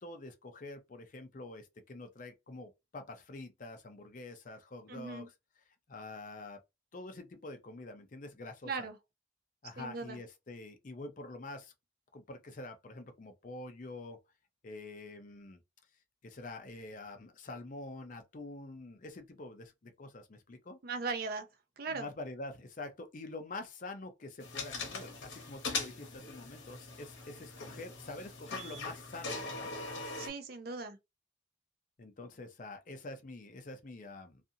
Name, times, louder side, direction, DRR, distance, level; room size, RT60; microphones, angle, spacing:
voice 1, 0.0-5.3 5.9-6.6 6.9-8.9 9.6-11.7 12.1-14.2 14.6-15.6 16.2-20.8 21.9-29.7 32.0-34.4, left 2 dB, 40° left, 0.5 m, -46 dB
voice 2, 4.9-5.3 8.6-9.0 9.8-10.2 20.8-21.5 21.8-22.1 30.1-31.0, right 4 dB, 50° right, 0.5 m, -38 dB
sound 1, 24.4-30.3, left 3 dB, 75° left, 0.9 m, -41 dB
2.5 x 2.5 x 2.7 m
head